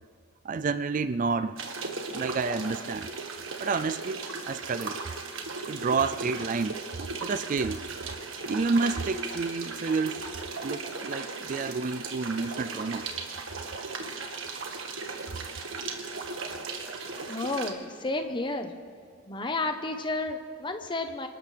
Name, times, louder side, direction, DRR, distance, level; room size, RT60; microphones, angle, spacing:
voice 1, 0.4-1.6 2.1-3.1 3.6-5.0 5.7-6.8 7.2-7.8 8.5-10.3 10.6-13.1, right 4 dB, 40° right, 0.3 m, -29 dB
sound 1, 1.6-17.7, right 4 dB, 65° right, 1.6 m, -37 dB
voice 2, 17.3-18.7 19.3-21.3, left 2 dB, 25° left, 1.0 m, -31 dB
27.5 x 12.5 x 3.4 m
head